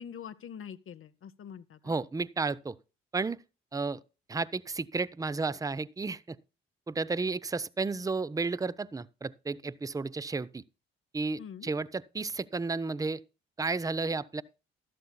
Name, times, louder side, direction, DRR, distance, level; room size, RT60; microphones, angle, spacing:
voice 1, 0.0-2.0 11.4-11.7, left 8 dB, 45° left, 0.7 m, -44 dB
voice 2, 1.8-2.8 3.1-3.4 3.7-4.0 4.3-6.4 6.9-10.6 11.1-13.2 13.6-14.4, right 3 dB, 10° right, 0.5 m, -32 dB
13.0 x 12.0 x 2.2 m
hypercardioid pair, 45°, 29 cm